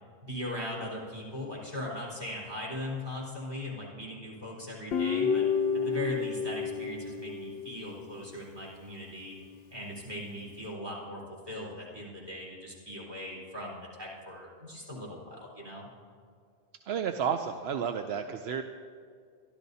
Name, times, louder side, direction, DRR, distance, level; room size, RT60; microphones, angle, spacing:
voice 1, 0.2-5.4 5.7-9.3 9.7-15.9, left 1 dB, 20° right, -5 dB, 4.2 m, -39 dB
Guitar, 4.9-8.2, left 6 dB, 70° left, 0.8 m, -30 dB
voice 2, 16.9-18.6, right 7 dB, 75° right, 6 dB, 0.9 m, -31 dB
25.5 x 12.0 x 2.8 m, 2.3 s
omnidirectional pair, 1.1 m